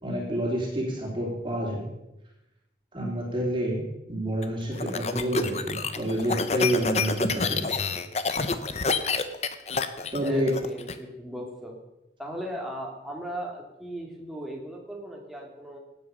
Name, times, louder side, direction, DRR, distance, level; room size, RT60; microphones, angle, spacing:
voice 1, 0.0-1.9 2.9-7.7 10.1-10.5, equal, 25° right, -2 dB, 3.3 m, -28 dB
sound 1, 4.4-10.9, left 4 dB, 35° left, 0.8 m, -28 dB
voice 2, 10.2-11.8 12.2-15.8, equal, ahead, -1 dB, 2.3 m, -37 dB
16.5 x 9.1 x 5.6 m, 0.92 s
head